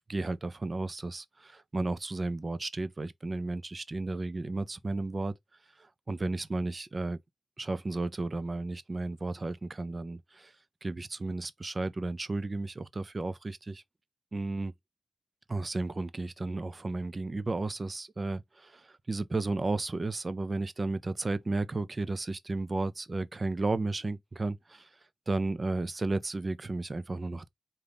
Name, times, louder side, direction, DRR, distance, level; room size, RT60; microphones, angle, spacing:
voice 1, 0.1-5.3 5.8-7.2 7.6-10.5 10.8-13.8 14.3-14.7 15.5-24.9 25.3-27.5, right 2 dB, 40° right, 0.6 m, -33 dB
3.8 x 2.8 x 3.4 m
supercardioid pair, 45°, 0 cm